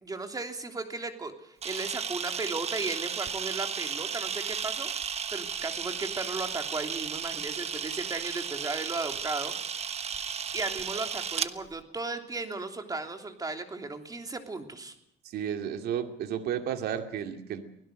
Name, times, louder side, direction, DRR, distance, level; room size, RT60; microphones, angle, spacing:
voice 1, 0.0-4.9 5.3-9.5 9.8-9.9 10.5-14.9, right 3 dB, 20° right, 6 dB, 3.1 m, -35 dB
Camera, 1.6-11.5, right 7 dB, 40° right, 1.2 m, -34 dB
voice 2, 15.2-17.6, right 9 dB, 70° right, 6 dB, 2.5 m, -33 dB
24.5 x 16.5 x 6.5 m, 0.78 s
cardioid pair, 110°, 17 cm